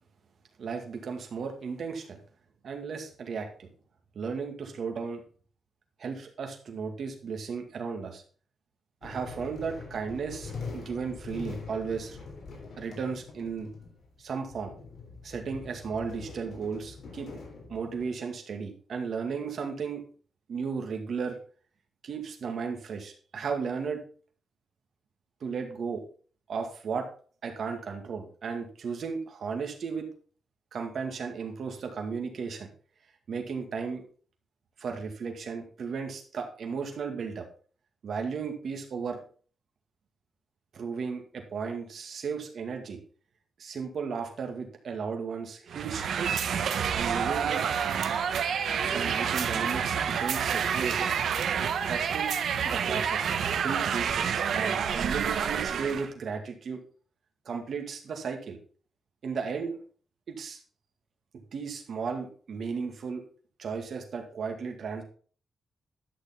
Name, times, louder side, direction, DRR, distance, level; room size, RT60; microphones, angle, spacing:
voice 1, 0.6-2.2 2.6-3.7 4.1-5.2 6.0-8.2 9.0-12.2 12.8-13.7 14.2-14.7 15.2-17.3 17.7-20.0 20.5-21.4 22.0-24.0 25.4-26.0 26.5-27.1 27.4-30.1 30.7-32.7 33.3-34.1 34.8-37.5 38.0-39.2 40.7-43.0 43.6-46.5 46.9-47.6 48.9-51.1 51.9-52.4 52.6-56.8 57.5-58.6 59.2-59.8 60.3-60.6 61.5-63.2 63.6-65.0, right 5 dB, 60° right, 4 dB, 2.1 m, -35 dB
sound 1, 9.0-18.0, left 4 dB, 60° left, 3.6 m, -43 dB
sound 2, 45.7-56.1, right 7 dB, 75° right, 1.0 m, -28 dB
11.5 x 6.6 x 3.9 m, 0.41 s
cardioid pair, 115°, 0 cm